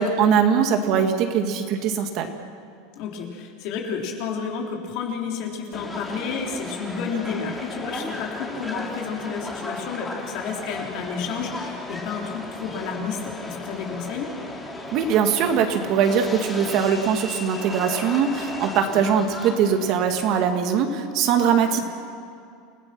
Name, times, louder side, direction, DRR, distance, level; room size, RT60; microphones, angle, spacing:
voice 1, 0.0-2.3 14.9-21.8, right 7 dB, 45° right, 5 dB, 2.0 m, -21 dB
voice 2, 3.0-14.3 18.9-19.0 21.7-21.8, left 5 dB, 55° left, 0 dB, 3.8 m, -31 dB
Subway metro underground, 5.7-20.3, left 2 dB, 10° left, 2.7 m, -35 dB
28.5 x 17.0 x 6.1 m, 2.4 s
supercardioid pair, 150°, 0 cm